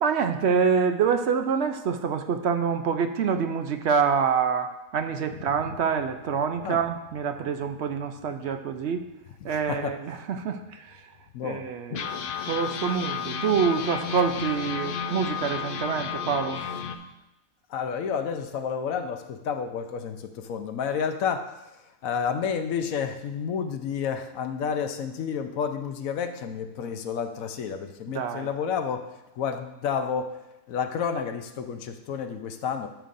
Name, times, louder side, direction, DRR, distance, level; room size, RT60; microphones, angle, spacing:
voice 1, 0.0-9.0 9.4-11.0 11.4-16.6 28.1-28.5, right 6 dB, 60° right, 8 dB, 0.8 m, -26 dB
sound 1, 5.9-9.1 9.5-9.6 9.9-10.1 10.7-10.8 11.9-17.0, left 7 dB, 60° left, 0.5 m, -33 dB
voice 2, 9.4-10.0 11.3-11.7 17.7-21.6 22.0-30.4 30.7-32.9, left 7 dB, 75° left, 7 dB, 1.1 m, -30 dB
12.0 x 6.8 x 2.6 m, 0.94 s
omnidirectional pair, 1.5 m